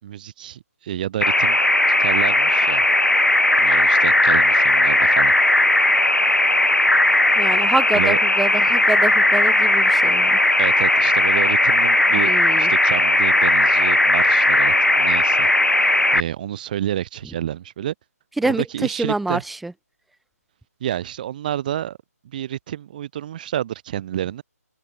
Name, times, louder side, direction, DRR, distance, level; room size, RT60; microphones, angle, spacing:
voice 1, 0.0-1.6 2.0-2.9 3.6-5.3 7.9-8.2 10.6-17.9 18.4-19.4 20.8-22.0 22.2-24.4, right 11 dB, 30° right, 3.3 m, -29 dB
sound 1, 1.2-16.2, left 1 dB, 85° left, 1.2 m, -17 dB
voice 2, 7.4-10.4 12.2-12.7 18.4-19.7, right 2 dB, ahead, 0.3 m, -26 dB
open air
figure-of-eight pair, 145°, 9 cm